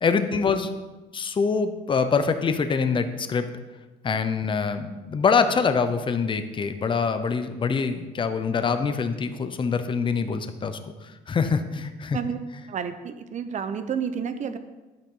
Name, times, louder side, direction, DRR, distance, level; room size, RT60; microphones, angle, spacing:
voice 1, 0.0-0.7 1.1-3.4 4.0-12.2, left 5 dB, 30° left, 9 dB, 0.8 m, -25 dB
voice 2, 12.1-14.6, right 7 dB, 45° right, 10 dB, 0.9 m, -30 dB
11.5 x 9.1 x 3.9 m, 1.1 s
cardioid pair, 110°, 17 cm